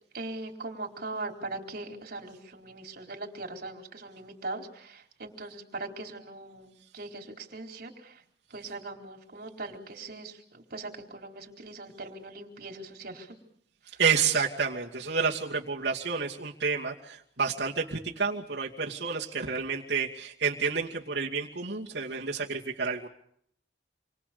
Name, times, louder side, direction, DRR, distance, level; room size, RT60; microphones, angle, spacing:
voice 1, 0.1-8.2 8.5-13.3, right 2 dB, 60° right, 2 dB, 4.4 m, -40 dB
voice 2, 14.0-23.1, right 5 dB, 75° right, -4 dB, 2.6 m, -29 dB
28.5 x 23.5 x 7.0 m, 0.69 s
head